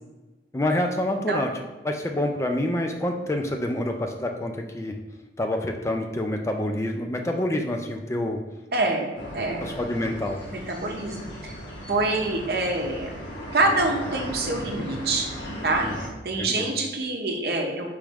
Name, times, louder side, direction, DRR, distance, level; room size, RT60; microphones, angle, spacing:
voice 1, 0.5-1.5 1.8-5.0 5.4-8.4 9.6-10.4 15.8-15.9 16.4-16.7, left 1 dB, 15° left, 3 dB, 0.3 m, -27 dB
voice 2, 8.7-9.7 10.5-11.5 11.9-13.1 13.5-15.3 15.6-15.8 16.2-17.9, right 2 dB, 60° right, 2 dB, 0.7 m, -26 dB
sound 1, 9.2-16.1, equal, 90° left, 1.2 m, -36 dB
4.8 x 3.1 x 3.4 m, 1.1 s
head